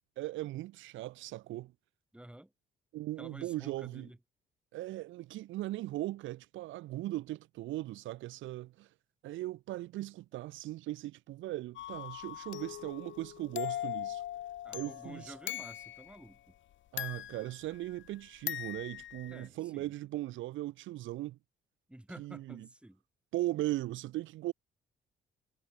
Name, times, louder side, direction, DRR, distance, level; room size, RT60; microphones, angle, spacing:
voice 1, 0.2-1.7 2.9-4.1 4.7-8.9 9.2-14.2 14.7-15.3 16.9-21.4 22.2-22.7 23.3-24.5, right 16 dB, 75° right, 0.5 m, -38 dB
voice 2, 2.1-2.5 3.2-4.2 14.6-16.5 19.3-19.9 21.9-23.0, right 1 dB, 5° right, 2.4 m, -51 dB
sound 1, 11.8-16.2 17.0-18.1 18.5-19.5, left 13 dB, 75° left, 1.3 m, -40 dB
cardioid pair, 90°, 20 cm